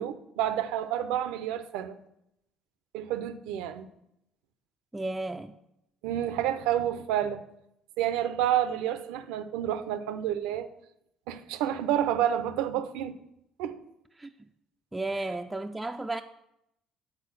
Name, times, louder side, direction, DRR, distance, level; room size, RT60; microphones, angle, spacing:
voice 1, 0.0-2.0 2.9-3.9 6.0-7.4 8.0-10.7 11.3-13.2 13.6-13.8, right 11 dB, 85° right, 0.5 m, -29 dB
voice 2, 4.9-5.6 14.2-14.3 14.9-16.2, right 2 dB, 15° right, 0.3 m, -33 dB
7.5 x 3.9 x 6.1 m
supercardioid pair, 80°, 0 cm